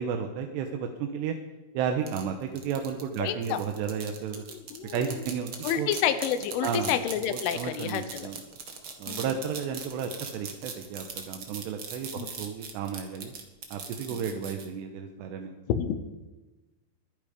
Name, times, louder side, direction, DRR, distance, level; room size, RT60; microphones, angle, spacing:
voice 1, 0.0-1.3 1.7-4.4 4.9-5.9 6.6-7.0 7.3-8.4 9.0-13.3 13.7-15.5, right 7 dB, 75° right, 5 dB, 2.9 m, -33 dB
sound 1, 2.1-14.6, right 6 dB, 60° right, 1.4 m, -40 dB
voice 2, 3.2-3.6 4.5-5.1 5.6-8.3 9.1-9.3 12.2-12.3 14.1-14.3 15.7-16.0, left 9 dB, 85° left, 11 dB, 3.6 m, -29 dB
23.0 x 10.5 x 5.1 m, 1.1 s
omnidirectional pair, 5.4 m